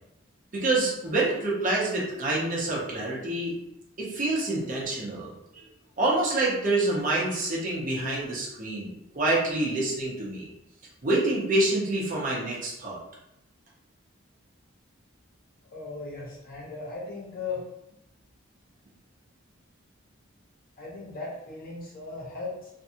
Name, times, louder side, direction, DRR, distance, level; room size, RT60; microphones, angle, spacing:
voice 1, 0.5-3.5 4.0-5.6 6.0-10.4 11.0-13.0, right 2 dB, 40° right, -4 dB, 0.7 m, -27 dB
voice 2, 15.7-17.6 20.8-22.7, left 3 dB, 45° left, -4 dB, 0.7 m, -37 dB
2.6 x 2.3 x 2.7 m, 0.84 s
head